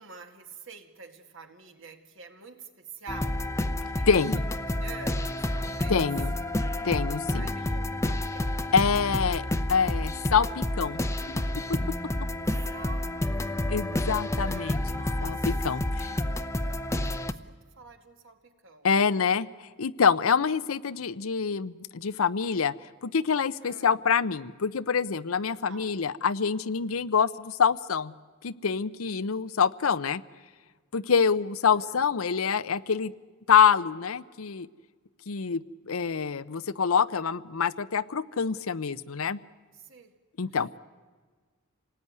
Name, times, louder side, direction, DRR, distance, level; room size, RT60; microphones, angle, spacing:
voice 1, 0.0-3.6 3.9-4.1 4.8-6.1 7.3-8.6 12.5-15.5 15.8-18.9 23.6-24.0 25.7-25.9 31.7-32.0 39.7-40.2 40.5-40.8, right 4 dB, 65° right, 6 dB, 2.1 m, -48 dB
sound 1, 3.1-17.3, left 1 dB, 15° left, 0.7 m, -29 dB
voice 2, 4.1-4.4 5.9-6.3 6.8-7.5 8.7-11.0 11.3-11.4 11.7-11.8 13.7-14.8 15.2-16.1 18.8-19.5 19.8-22.7 23.0-28.1 28.4-30.2 30.9-33.1 33.5-34.7 35.3-39.4 40.4-40.7, left 6 dB, 85° left, 16 dB, 0.7 m, -26 dB
27.5 x 19.0 x 9.6 m, 1.5 s
head